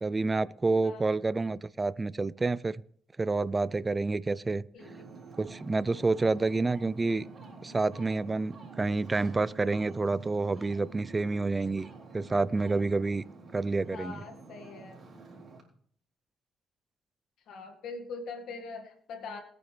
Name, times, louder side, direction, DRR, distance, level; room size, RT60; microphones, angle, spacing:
voice 1, 0.0-2.8 3.2-4.6 5.4-7.3 7.6-13.2 13.5-14.2, right 3 dB, 25° right, 0.4 m, -28 dB
voice 2, 4.7-5.2 13.9-15.0 17.5-19.4, left 4 dB, 75° left, 1.9 m, -42 dB
Ocean, 4.8-15.6, right 4 dB, 40° right, 3.9 m, -49 dB
21.5 x 9.3 x 3.4 m
cardioid pair, 90°, 0 cm